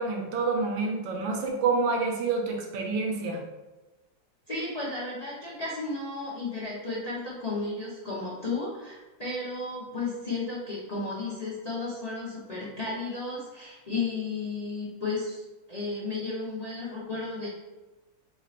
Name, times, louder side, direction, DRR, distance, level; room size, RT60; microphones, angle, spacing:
voice 1, 0.0-3.4, right 4 dB, 75° right, 1 dB, 1.4 m, -28 dB
voice 2, 4.5-17.5, left 3 dB, 80° left, -9 dB, 0.3 m, -33 dB
3.7 x 2.5 x 4.2 m, 1.1 s
omnidirectional pair, 2.1 m